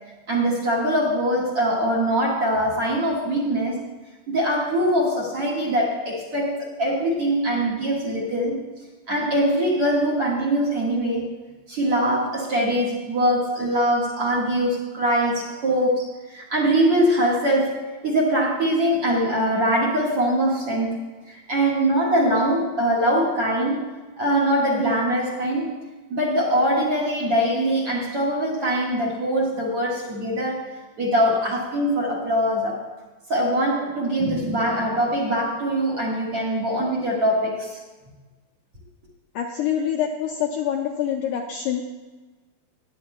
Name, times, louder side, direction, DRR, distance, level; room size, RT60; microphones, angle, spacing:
voice 1, 0.3-3.8 4.3-8.6 9.1-11.3 11.7-21.0 21.3-23.8 24.2-25.8 26.1-30.7 31.0-32.8 33.3-37.8, right 1 dB, 50° right, -2 dB, 2.0 m, -22 dB
voice 2, 39.4-41.8, left 9 dB, 80° left, 0 dB, 1.9 m, -25 dB
17.5 x 9.8 x 2.2 m, 1.3 s
omnidirectional pair, 4.4 m